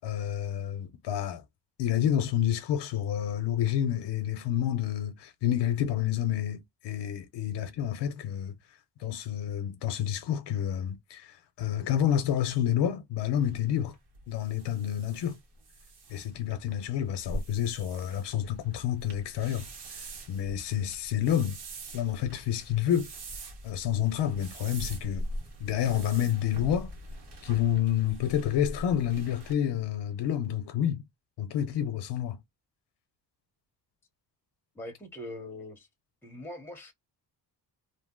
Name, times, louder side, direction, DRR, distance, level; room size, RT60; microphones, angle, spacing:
voice 1, 0.0-1.4 1.8-8.6 9.0-13.9 14.3-15.3 16.1-19.7 20.0-21.6 21.9-23.1 23.6-25.3 25.6-26.9 27.4-31.0 31.4-32.4, left 10 dB, 75° left, 0.7 m, -29 dB
sound 1, 13.4-29.5, right 1 dB, 70° right, 1.3 m, -43 dB
voice 2, 34.7-35.9 36.2-36.9, left 1 dB, 5° left, 0.7 m, -42 dB
2.7 x 2.0 x 3.6 m
cardioid pair, 140°, 41 cm